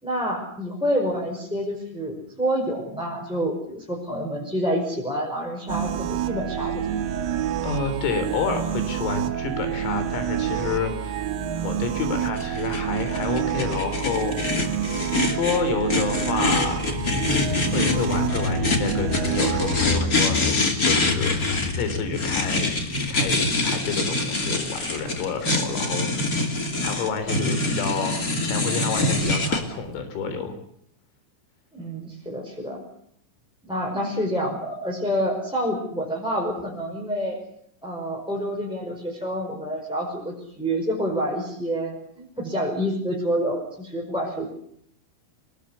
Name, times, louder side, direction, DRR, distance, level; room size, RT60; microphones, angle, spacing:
voice 1, 0.0-6.8 31.7-32.8 33.6-37.4 37.8-44.5, equal, ahead, -2 dB, 4.6 m, -28 dB
sound 1, 5.7-20.0, right 9 dB, 70° right, 4.5 m, -28 dB
voice 2, 7.6-11.2 11.6-14.7 15.3-16.8 17.7-21.4 21.8-22.7 23.1-26.3 26.8-30.6, left 5 dB, 85° left, 9 dB, 6.2 m, -29 dB
sound 2, 12.4-29.6, left 2 dB, 30° left, 1.8 m, -25 dB
sound 3, 15.9-25.0 25.4-25.5, left 5 dB, 65° left, 4.8 m, -30 dB
25.5 x 20.0 x 8.4 m, 0.71 s
omnidirectional pair, 5.9 m